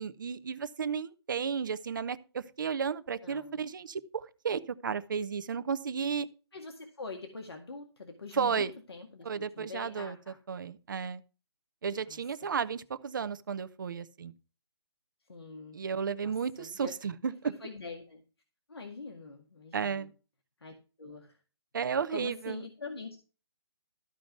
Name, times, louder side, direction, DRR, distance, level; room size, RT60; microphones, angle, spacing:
voice 1, 0.0-6.3 8.3-8.7 9.2-11.2 11.8-14.3 15.7-17.5 19.7-20.1 21.7-22.6, right 6 dB, 50° right, 0.8 m, -33 dB
voice 2, 3.2-3.6 6.5-10.4 12.1-12.2 15.3-15.8 16.2-16.3 16.6-16.9 17.4-18.2 18.7-20.1 20.6-21.4 22.1-23.2, left 3 dB, 70° left, 1.8 m, -44 dB
13.5 x 5.2 x 5.8 m
figure-of-eight pair, 140°, 14 cm